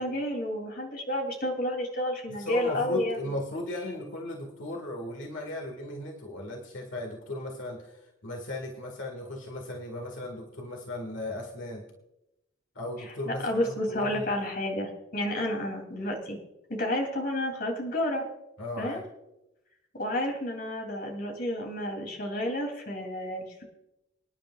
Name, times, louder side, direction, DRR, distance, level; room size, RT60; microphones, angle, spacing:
voice 1, 0.0-3.2 13.3-16.4 16.7-18.2 18.8-19.0 19.9-23.6, left 1 dB, 50° left, 1 dB, 3.1 m, -30 dB
voice 2, 2.4-11.8 12.8-14.3 18.6-19.0, left 2 dB, 80° left, 1 dB, 1.9 m, -36 dB
26.0 x 10.5 x 2.4 m, 0.89 s
head